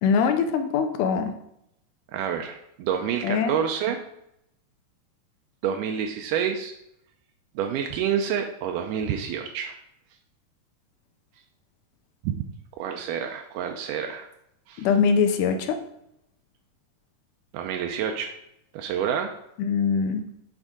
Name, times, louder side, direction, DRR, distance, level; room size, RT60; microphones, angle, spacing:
voice 1, 0.0-1.3 3.2-3.6 14.8-15.8 19.6-20.2, left 6 dB, 85° left, 7 dB, 2.2 m, -22 dB
voice 2, 2.1-4.1 5.6-6.7 7.6-9.8 12.2-12.5 12.8-14.3 14.7-14.9 17.5-18.3 18.7-19.3, right 8 dB, 85° right, 4 dB, 2.2 m, -28 dB
7.5 x 3.6 x 4.9 m, 0.77 s
omnidirectional pair, 3.7 m